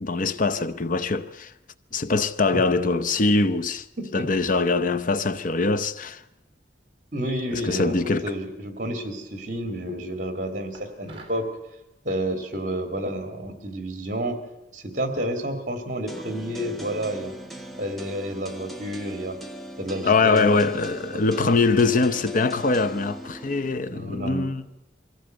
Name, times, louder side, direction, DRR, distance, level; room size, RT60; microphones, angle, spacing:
voice 1, 0.0-1.5 1.9-3.9 4.1-6.2 7.5-8.3 20.0-24.6, left 3 dB, 50° left, 0.7 m, -23 dB
voice 2, 7.1-11.5 12.0-14.4 14.7-17.3 17.8-19.4 19.8-20.6 21.0-21.8 23.9-24.4, equal, 45° right, 2.7 m, -30 dB
sound 1, 10.7-11.5, right 4 dB, 30° right, 3.5 m, -47 dB
sound 2, 16.1-23.7, right 1 dB, ahead, 1.5 m, -39 dB
23.0 x 15.5 x 7.9 m
head